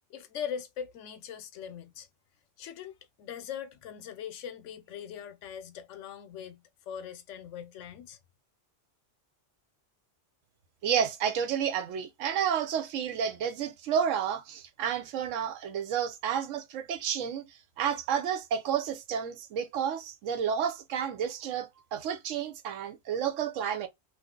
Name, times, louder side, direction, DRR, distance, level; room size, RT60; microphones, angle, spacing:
voice 1, 0.1-2.1 2.6-8.2, left 8 dB, 75° left, 0.9 m, -41 dB
voice 2, 10.8-23.9, right 8 dB, 85° right, 1.0 m, -31 dB
2.6 x 2.4 x 3.6 m
omnidirectional pair, 1.3 m